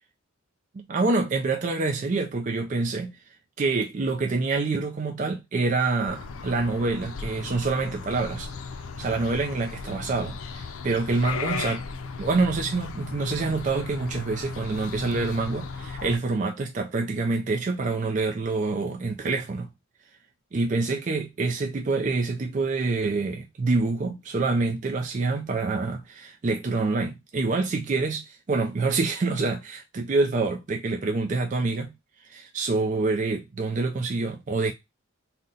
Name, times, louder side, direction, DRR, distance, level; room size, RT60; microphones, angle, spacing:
voice 1, 0.7-3.2 3.6-8.5 9.0-11.8 12.2-19.7 20.5-31.9 32.2-34.7, right 3 dB, 35° right, 0.4 m, -26 dB
sound 1, 6.1-16.2, left 5 dB, 80° left, 0.5 m, -36 dB
3.8 x 2.2 x 3.8 m
head